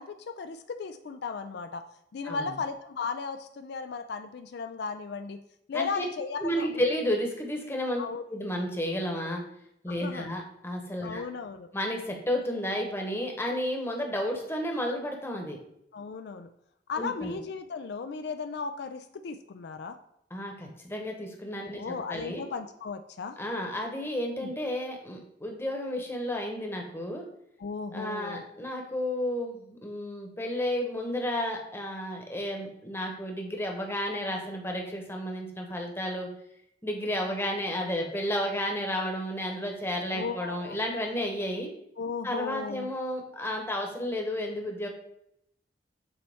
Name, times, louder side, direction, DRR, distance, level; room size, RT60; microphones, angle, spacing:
voice 1, 0.0-1.8 2.1-5.4 5.7-6.7 8.0-8.2 9.9-10.3 11.0-11.7 15.9-16.5 16.9-20.0 21.7-23.4 24.4-24.5 27.6-28.4 40.1-40.8 42.0-42.9, left 5 dB, 65° left, 8 dB, 0.4 m, -36 dB
voice 2, 2.2-2.6 5.7-6.0 6.4-8.0 8.3-9.4 9.8-11.2 11.7-15.6 17.0-17.4 20.3-22.4 23.4-27.2 27.9-36.3 36.8-41.7 42.2-44.9, left 1 dB, 15° left, 2 dB, 1.0 m, -32 dB
7.6 x 4.3 x 3.5 m, 0.75 s
head